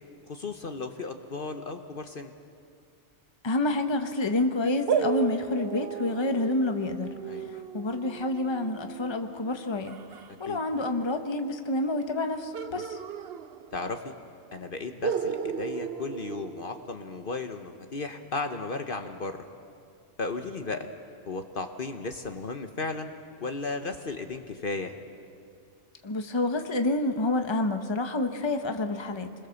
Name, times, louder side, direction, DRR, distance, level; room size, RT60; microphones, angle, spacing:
voice 1, 0.3-2.3 7.3-7.5 10.5-10.6 12.8-12.9 13.7-14.1 14.5-19.4 20.2-20.9 21.3-23.1 23.4-25.0, left 3 dB, 50° left, 6 dB, 1.2 m, -35 dB
voice 2, 3.4-7.1 7.5-10.0 10.4-13.0 26.0-29.5, left 2 dB, 25° left, 6 dB, 1.1 m, -28 dB
sound 1, 4.9-10.3 12.5-14.0 14.3-14.4 15.0-17.2, right 7 dB, 60° right, 1.0 m, -34 dB
27.5 x 21.0 x 7.0 m, 2.3 s
omnidirectional pair, 1.2 m